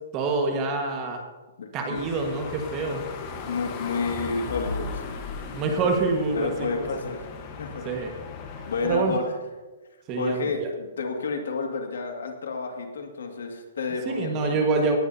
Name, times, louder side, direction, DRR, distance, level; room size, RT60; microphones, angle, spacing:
voice 1, 0.1-1.2 1.7-3.0 5.5-6.9 7.8-8.1 8.8-9.2 10.1-10.7 14.0-15.0, right 3 dB, 25° right, 3 dB, 1.5 m, -26 dB
voice 2, 1.6-2.1 3.5-5.1 6.3-7.8 8.7-9.3 10.1-14.6, left 4 dB, 85° left, 3 dB, 2.0 m, -30 dB
sound 1, 1.9-9.0, left 4 dB, 25° left, 1.1 m, -37 dB
18.0 x 11.0 x 2.8 m, 1.3 s
hypercardioid pair, 170°, 0 cm